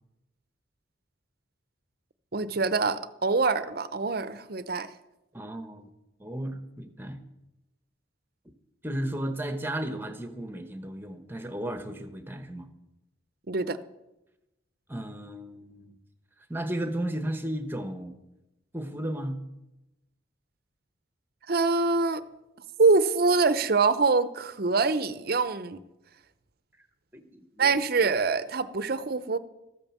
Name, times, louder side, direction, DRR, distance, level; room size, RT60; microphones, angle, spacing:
voice 1, 2.3-4.9 13.5-13.8 21.5-22.2 22.8-25.8 27.6-29.4, right 4 dB, 50° right, 14 dB, 0.7 m, -24 dB
voice 2, 5.3-5.9 6.2-7.2 8.8-12.7 14.9-16.0 16.5-18.1 18.7-19.4 27.1-27.7, right 1 dB, 10° right, 9 dB, 1.0 m, -34 dB
13.5 x 9.0 x 7.2 m, 0.96 s
head